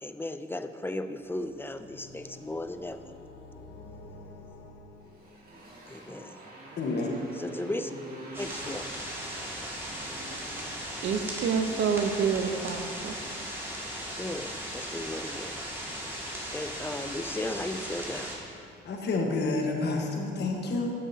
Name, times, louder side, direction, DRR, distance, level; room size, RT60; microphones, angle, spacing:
voice 1, 0.0-3.0 5.9-6.3 7.4-7.9 8.4-8.9 14.2-15.5 16.5-18.3, left 1 dB, 10° left, 9 dB, 0.4 m, -36 dB
sound 1, 1.2-5.8, left 2 dB, 80° left, 1.0 m, -49 dB
Motorcycle, 5.0-12.4, right 1 dB, 50° right, 2.1 m, -46 dB
voice 2, 6.8-7.2 18.8-20.9, left 3 dB, 60° left, 1 dB, 1.3 m, -29 dB
sound 2, 8.3-18.4, equal, 10° right, 2.1 m, -37 dB
voice 3, 11.0-13.2, right 6 dB, 70° right, 7 dB, 0.8 m, -28 dB
12.5 x 7.4 x 2.8 m, 2.5 s
cardioid pair, 90°, 20 cm